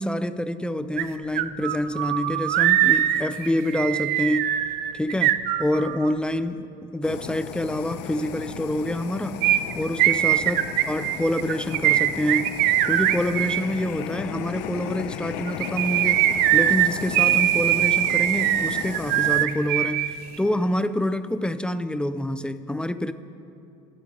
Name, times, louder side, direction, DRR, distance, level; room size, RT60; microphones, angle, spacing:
voice 1, 0.0-4.5 4.9-9.4 9.7-10.6 10.9-12.5 12.9-16.3 16.5-23.1, left 1 dB, 5° left, 12 dB, 0.6 m, -27 dB
sound 1, 1.0-1.1 1.4-6.1 9.4-13.6 15.5-20.1 20.3-20.4, right 13 dB, 65° right, 0.8 m, -22 dB
Fire, 7.0-19.5, left 10 dB, 75° left, 0.8 m, -35 dB
29.5 x 13.0 x 3.4 m, 2.7 s
supercardioid pair, 110°, 17 cm